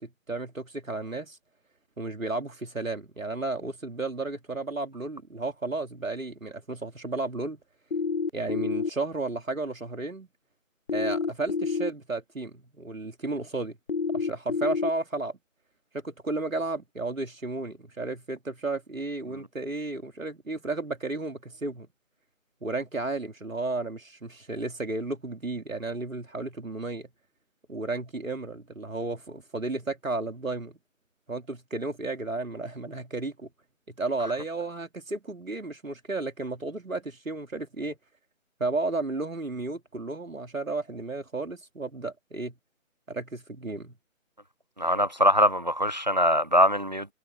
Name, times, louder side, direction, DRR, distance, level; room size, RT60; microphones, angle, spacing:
voice 1, 0.0-1.4 2.0-7.6 8.3-10.3 10.9-13.8 14.1-15.4 15.9-21.9 22.6-27.1 27.7-30.7 31.3-33.5 33.9-38.0 38.6-42.5 43.1-43.9, right 2 dB, 75° right, 3.1 m, -33 dB
sound 1, 7.9-8.9 10.9-11.9 13.9-14.9, left 5 dB, 45° left, 0.8 m, -28 dB
voice 2, 44.8-47.1, equal, 35° right, 0.5 m, -22 dB
figure-of-eight pair, 145°, 40 cm